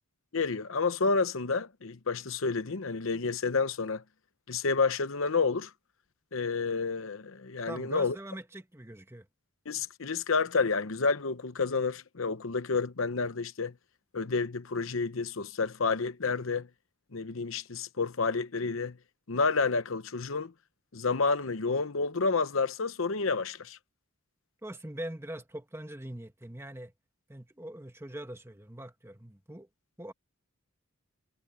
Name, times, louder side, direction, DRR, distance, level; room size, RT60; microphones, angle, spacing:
voice 1, 0.3-4.0 4.5-5.7 6.3-8.2 9.7-13.7 14.1-16.7 17.1-19.0 19.3-20.5 20.9-23.8, left 4 dB, 70° left, 0.9 m, -29 dB
voice 2, 7.7-9.3 24.6-26.9 27.3-29.7 30.0-30.1, right 1 dB, 10° right, 1.7 m, -42 dB
head